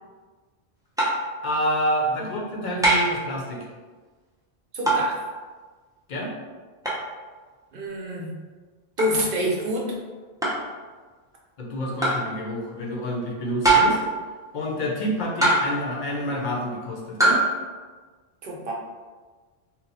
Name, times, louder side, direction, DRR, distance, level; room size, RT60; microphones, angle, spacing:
sound 1, 1.0-1.3 2.8-3.2 4.9-5.1 6.8-7.0 9.0-9.2 10.4-10.7 12.0-12.3 13.6-14.1 15.4-15.9 17.2-17.5, right 2 dB, 5° right, 0.5 m, -21 dB
voice 1, 1.4-3.7 6.1-6.3 9.4-9.5 11.6-14.0 14.5-17.4, equal, 50° left, -2 dB, 0.7 m, -28 dB
voice 2, 4.7-5.2 7.7-8.3 9.0-9.9 18.4-18.7, left 1 dB, 60° right, -2 dB, 0.8 m, -27 dB
2.9 x 2.0 x 4.0 m, 1.4 s
omnidirectional pair, 1.1 m